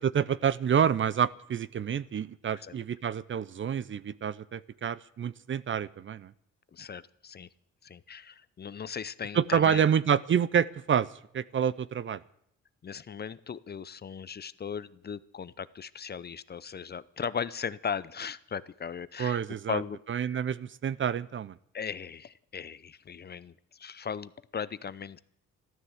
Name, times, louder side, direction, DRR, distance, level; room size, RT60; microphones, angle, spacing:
voice 1, 0.0-6.3 9.3-11.1 11.3-12.2 19.2-19.8 20.1-21.5, right 8 dB, 40° right, 19 dB, 0.6 m, -28 dB
voice 2, 6.7-7.5 7.8-9.8 12.8-19.4 19.7-20.0 21.7-25.2, left 7 dB, 35° left, 17 dB, 0.6 m, -37 dB
13.0 x 12.5 x 7.9 m, 0.73 s
cardioid pair, 90°, 30 cm